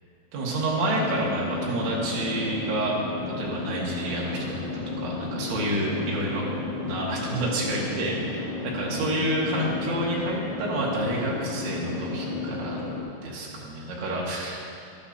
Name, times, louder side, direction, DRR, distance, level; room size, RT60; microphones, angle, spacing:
voice 1, 0.3-2.9 3.4-6.5 6.9-12.9 13.2-14.6, right 1 dB, 80° right, -4 dB, 4.1 m, -29 dB
sound 1, 0.8-13.0, left 3 dB, 55° right, 3.7 m, -33 dB
12.0 x 12.0 x 2.7 m, 2.4 s
omnidirectional pair, 5.4 m